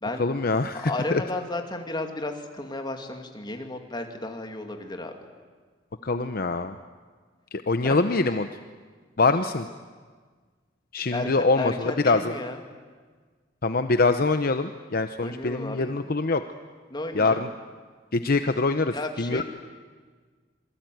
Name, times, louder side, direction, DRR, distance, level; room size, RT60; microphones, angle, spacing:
voice 1, 0.2-1.2 6.0-6.8 7.7-8.5 9.2-9.7 10.9-12.3 13.6-16.4 17.1-17.5 18.1-19.4, left 3 dB, 50° left, 9 dB, 0.8 m, -24 dB
voice 2, 0.7-5.1 7.8-8.0 11.1-12.6 15.2-15.9 16.9-17.5 18.9-19.4, left 2 dB, 25° left, 4 dB, 2.5 m, -33 dB
26.5 x 22.5 x 9.4 m, 1.5 s
head